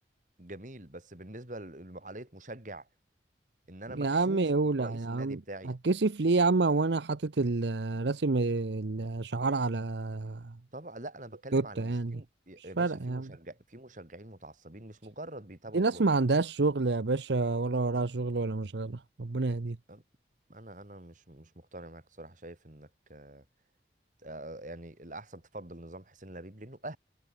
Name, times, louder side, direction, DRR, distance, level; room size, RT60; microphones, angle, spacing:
voice 1, 0.4-2.9 3.7-4.5 4.8-5.7 10.7-16.0 19.9-20.0 20.5-23.4 24.2-27.0, right 1 dB, 45° right, 2.9 m, -45 dB
voice 2, 3.9-10.6 11.5-12.2 12.6-13.3 15.7-19.8, right 3 dB, 80° right, 0.8 m, -28 dB
head